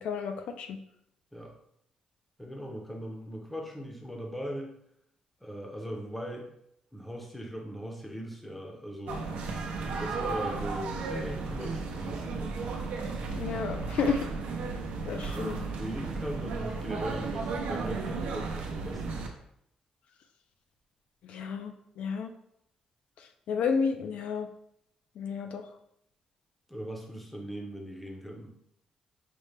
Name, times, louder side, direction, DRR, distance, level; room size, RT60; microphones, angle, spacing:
voice 1, 0.0-0.8 13.3-14.3 15.1-15.6 21.2-22.3 23.2-24.5 25.2-25.7, left 5 dB, 70° left, 6 dB, 0.3 m, -32 dB
voice 2, 2.4-4.7 5.4-6.5 6.9-9.2 10.0-12.5 15.1-19.2 26.7-28.6, equal, 5° left, 0 dB, 0.5 m, -39 dB
sound 1, 9.1-19.3, right 4 dB, 85° right, 0.6 m, -34 dB
5.1 x 2.1 x 3.2 m, 0.75 s
cardioid pair, 175°, 2 cm